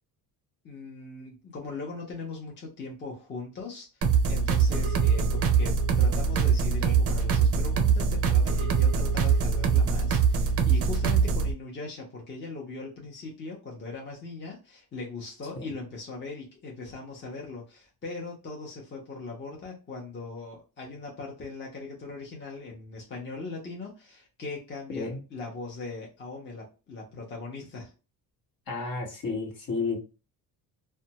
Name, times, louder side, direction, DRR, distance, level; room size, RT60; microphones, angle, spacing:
voice 1, 0.6-27.9, left 3 dB, 25° left, -2 dB, 0.8 m, -40 dB
sound 1, 4.0-11.5, right 6 dB, 35° right, 0.4 m, -23 dB
voice 2, 28.7-30.0, left 4 dB, 55° left, 1 dB, 1.1 m, -31 dB
2.5 x 2.2 x 2.8 m, 0.31 s
cardioid pair, 145°, 40 cm